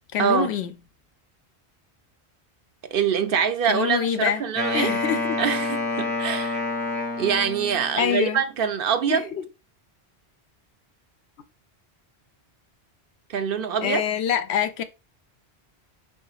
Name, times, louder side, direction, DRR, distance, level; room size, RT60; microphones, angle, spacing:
voice 1, 0.1-0.7 3.7-4.4 4.7-5.4 7.9-8.4 9.1-9.4 13.8-14.8, left 8 dB, 75° left, 0.9 m, -25 dB
voice 2, 2.9-4.9 5.4-6.6 7.2-9.3 13.3-14.0, right 7 dB, 65° right, 0.7 m, -24 dB
Wind instrument woodwind instrument, 4.6-8.0, left 3 dB, 10° left, 1.2 m, -28 dB
4.8 x 3.8 x 2.3 m
omnidirectional pair, 1.1 m